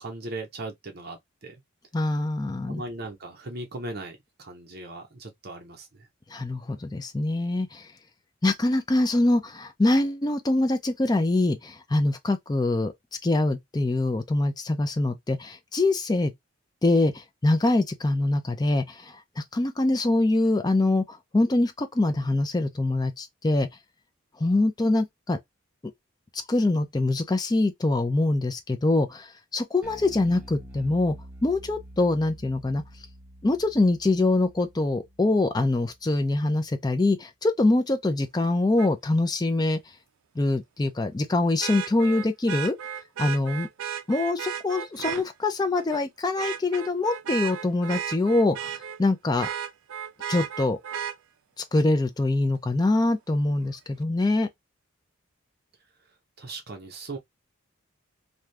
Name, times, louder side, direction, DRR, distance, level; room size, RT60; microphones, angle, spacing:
voice 1, 0.0-1.6 2.7-6.1 56.4-57.2, right 2 dB, 45° right, 0.8 m, -38 dB
voice 2, 1.9-2.8 6.3-7.9 8.4-12.9 13.2-16.3 16.8-23.7 24.4-25.4 26.5-32.8 33.4-39.8 40.4-42.8 43.2-43.7 44.1-49.5 50.3-50.8 51.7-54.5, left 2 dB, 20° left, 0.4 m, -24 dB
Bass guitar, 29.8-36.3, equal, 10° right, 0.8 m, -47 dB
Vehicle horn car horn honking, 38.8-38.9 41.6-45.2 45.8-46.0 46.4-49.0 49.4-51.2 53.0-53.1, right 8 dB, 75° right, 0.4 m, -34 dB
2.7 x 2.3 x 3.2 m
head